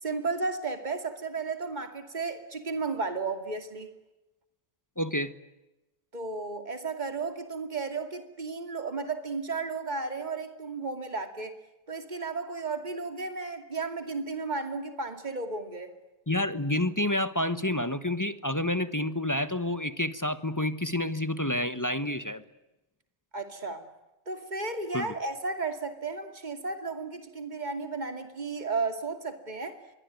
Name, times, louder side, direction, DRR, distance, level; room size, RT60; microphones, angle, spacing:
voice 1, 0.0-3.9 6.1-11.5 11.9-15.9 23.3-23.9 24.3-29.8, right 4 dB, 45° right, 7 dB, 2.6 m, -34 dB
voice 2, 5.0-5.3 16.3-22.4 24.9-25.1, left 1 dB, 20° left, 12 dB, 1.2 m, -29 dB
26.5 x 23.5 x 9.4 m, 0.99 s
omnidirectional pair, 1.1 m